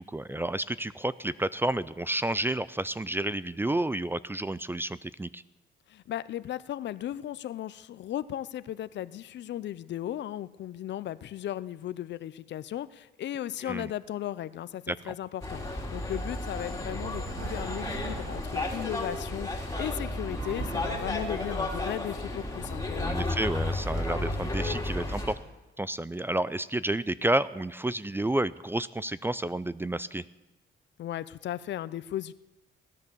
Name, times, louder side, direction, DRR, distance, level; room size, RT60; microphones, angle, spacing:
voice 1, 0.0-5.4 13.6-13.9 14.9-15.1 23.0-25.4 25.8-30.2, right 1 dB, 10° right, 17 dB, 0.4 m, -30 dB
voice 2, 5.9-23.3 31.0-32.3, left 12 dB, 65° left, 17 dB, 0.6 m, -36 dB
sound 1, 15.4-25.3, left 2 dB, 15° left, 3.0 m, -33 dB
sound 2, 16.8-18.8 20.2-21.5, right 3 dB, 75° right, 7.4 m, -40 dB
17.5 x 11.0 x 6.9 m, 1.1 s
cardioid pair, 90°, 20 cm